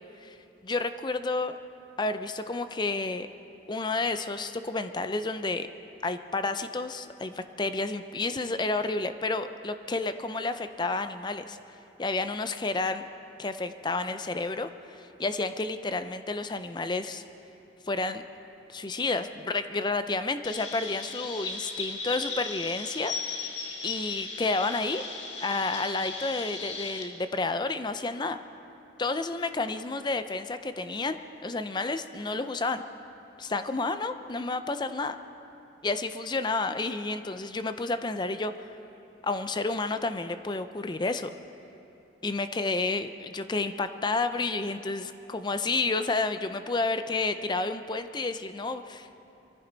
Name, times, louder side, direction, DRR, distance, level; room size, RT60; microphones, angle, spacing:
voice 1, 0.6-1.5 2.0-3.3 3.7-5.7 6.0-11.6 12.0-13.1 13.4-17.2 17.9-18.2 18.7-23.1 23.8-25.0 25.4-28.4 29.0-32.8 33.4-35.2 35.8-38.7 39.2-41.3 42.2-49.1, left 3 dB, 25° left, 10 dB, 0.5 m, -30 dB
Chirp tweet, 20.4-27.0, left 4 dB, 85° left, 1.6 m, -37 dB
23.5 x 14.5 x 4.0 m, 2.8 s
head